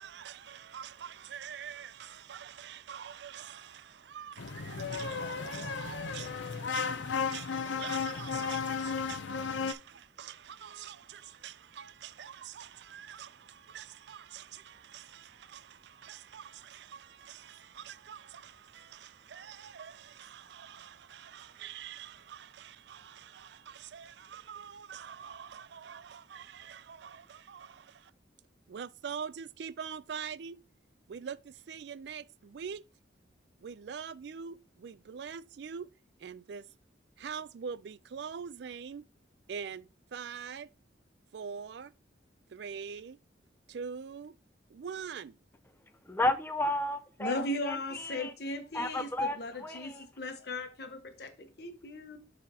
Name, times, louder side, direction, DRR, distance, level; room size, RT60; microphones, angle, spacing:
voice 1, 0.0-28.1 28.7-30.6 31.1-32.8 33.6-35.9 36.2-36.7 37.2-39.0 39.5-40.7 41.3-41.9 42.5-43.2 43.7-44.4 44.7-45.4, right 7 dB, 65° right, 0.4 m, -44 dB
sound 1, 4.4-9.7, left 5 dB, 80° left, 0.6 m, -34 dB
voice 2, 46.1-47.4 47.6-48.3 48.7-50.0, left 1 dB, 10° left, 0.5 m, -32 dB
voice 3, 47.2-52.2, left 1 dB, 60° left, 1.1 m, -37 dB
11.5 x 4.1 x 2.8 m
head